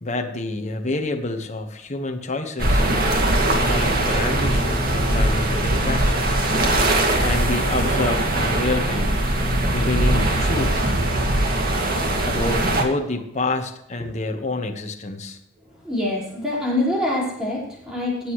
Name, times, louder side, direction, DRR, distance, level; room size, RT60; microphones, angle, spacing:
voice 1, 0.0-2.8 3.5-6.4 7.2-9.2 9.7-10.8 12.2-15.4, left 2 dB, 35° left, 4 dB, 1.3 m, -28 dB
sound 1, 2.6-12.8, right 1 dB, 45° right, 2.1 m, -21 dB
voice 2, 15.8-18.3, left 1 dB, 5° right, -5 dB, 4.9 m, -25 dB
17.5 x 8.3 x 3.2 m, 0.80 s
head